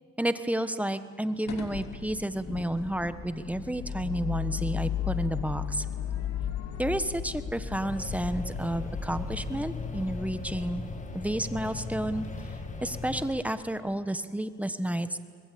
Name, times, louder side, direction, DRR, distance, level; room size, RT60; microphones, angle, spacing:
voice 1, 0.2-5.8 6.8-10.8 11.1-12.3 12.8-15.2, right 1 dB, 5° right, 11 dB, 1.3 m, -31 dB
sound 1, 1.5-13.2, left 8 dB, 65° left, 2.7 m, -36 dB
sound 2, 7.8-13.3, left 3 dB, 25° left, 2.1 m, -39 dB
24.5 x 20.5 x 8.6 m, 2.1 s
cardioid pair, 90°, 30 cm